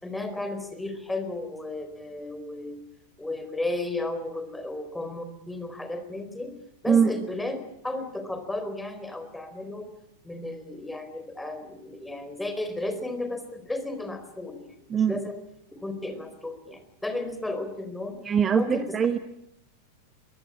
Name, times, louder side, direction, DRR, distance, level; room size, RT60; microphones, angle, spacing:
voice 1, 0.0-2.8 3.2-6.5 6.8-9.9 10.2-15.3 15.7-18.2 18.5-19.0, left 2 dB, 5° left, 7 dB, 4.3 m, -34 dB
voice 2, 18.2-19.2, right 7 dB, 20° right, 11 dB, 1.2 m, -22 dB
23.5 x 21.5 x 8.7 m, 0.78 s
figure-of-eight pair, 90°, 0 cm